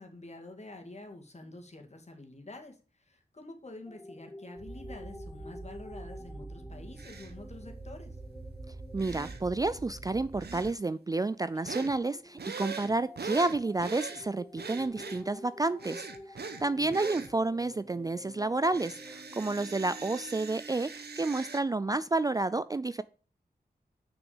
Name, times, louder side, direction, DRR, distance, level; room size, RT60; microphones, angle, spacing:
voice 1, 0.0-8.2 16.7-17.0, left 2 dB, 40° left, 3 dB, 2.3 m, -48 dB
sound 1, 3.9-11.0 11.9-20.4, left 1 dB, 10° left, 1.1 m, -50 dB
sound 2, 4.6-10.7, right 2 dB, 45° right, 1.0 m, -45 dB
sound 3, 7.0-7.3 9.0-9.4 10.4-10.7 11.7-11.9 12.4-14.2 14.6-15.2 15.8-16.6 16.9-17.3 18.7-21.6, right 5 dB, 75° right, 1.1 m, -41 dB
voice 2, 8.9-23.0, right 3 dB, 20° right, 16 dB, 0.3 m, -30 dB
6.2 x 6.1 x 7.2 m, 0.37 s
wide cardioid pair, 70°, 17 cm